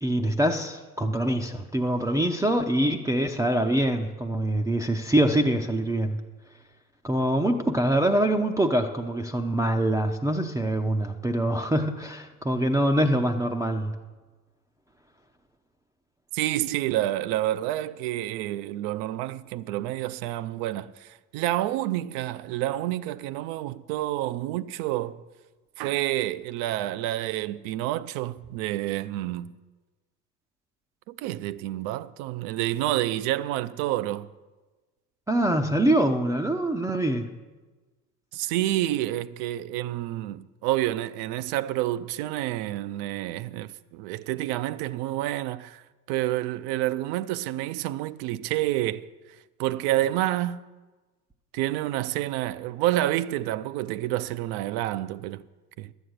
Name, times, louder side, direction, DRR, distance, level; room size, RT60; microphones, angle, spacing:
voice 1, 0.0-6.2 7.0-13.9 35.3-37.3, right 1 dB, 5° right, 0.6 m, -24 dB
voice 2, 16.3-25.2 25.8-29.5 31.2-34.3 38.3-45.8 46.1-49.1 49.6-50.6 51.5-55.4 55.8-55.9, right 14 dB, 50° right, 0.5 m, -28 dB
12.5 x 8.0 x 6.5 m
hypercardioid pair, 75°, 47 cm